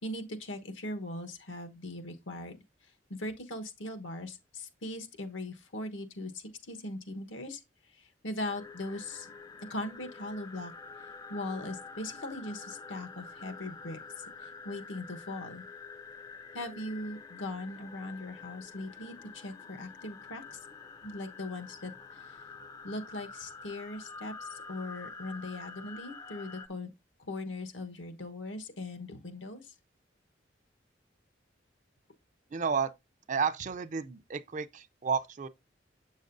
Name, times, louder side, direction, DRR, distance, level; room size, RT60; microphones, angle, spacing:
voice 1, 0.0-2.6 3.1-7.6 8.0-9.3 9.7-10.7 11.3-14.0 14.4-15.6 16.5-20.6 21.0-22.4 22.8-26.9 27.3-29.7, left 1 dB, 85° left, 1.1 m, -40 dB
sound 1, 8.4-26.7, left 4 dB, 20° left, 0.4 m, -47 dB
voice 2, 32.5-32.9 33.3-35.5, right 6 dB, 40° right, 0.4 m, -31 dB
7.6 x 6.3 x 2.6 m
head